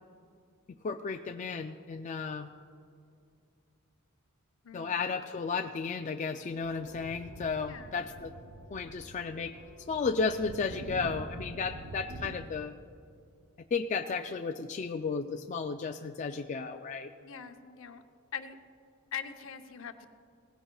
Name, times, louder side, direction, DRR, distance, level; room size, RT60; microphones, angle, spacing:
voice 1, 0.8-2.5 4.7-8.3 8.7-9.5 9.9-12.7 13.7-17.1, left 5 dB, 35° left, 5 dB, 0.3 m, -33 dB
sound 1, 6.5-12.5, right 2 dB, 80° right, 0.8 m, -46 dB
voice 2, 7.7-8.0 17.2-18.0 18.3-18.6 19.1-20.1, left 7 dB, 65° left, 7 dB, 0.7 m, -42 dB
18.5 x 15.0 x 2.3 m, 2.4 s
head